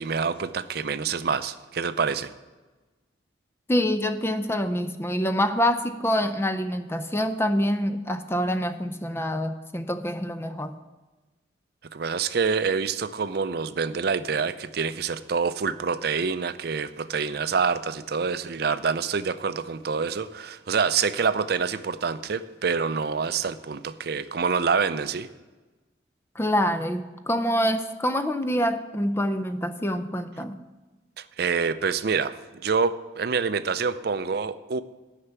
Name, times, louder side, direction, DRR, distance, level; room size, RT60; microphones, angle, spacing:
voice 1, 0.0-2.3 11.9-25.3 31.2-32.4 32.6-34.8, right 5 dB, 55° right, 13 dB, 0.5 m, -26 dB
voice 2, 3.7-10.7 26.4-30.6, equal, 15° left, 9 dB, 0.5 m, -26 dB
9.9 x 5.8 x 8.1 m, 1.2 s
head